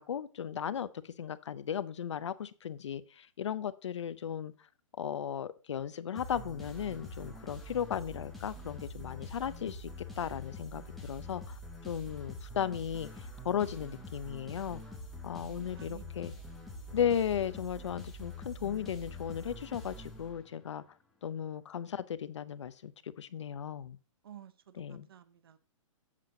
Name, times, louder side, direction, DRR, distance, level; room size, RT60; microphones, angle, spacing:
voice 1, 0.0-4.5 5.0-11.6 11.8-14.8 15.2-16.3 16.9-20.8 21.2-24.0 24.8-25.1, left 8 dB, 60° left, 0.6 m, -36 dB
sound 1, 6.1-20.7, left 1 dB, ahead, 0.4 m, -45 dB
voice 2, 15.3-17.0 24.2-25.6, right 10 dB, 45° right, 0.7 m, -55 dB
7.5 x 7.5 x 3.8 m
hypercardioid pair, 180°, 17 cm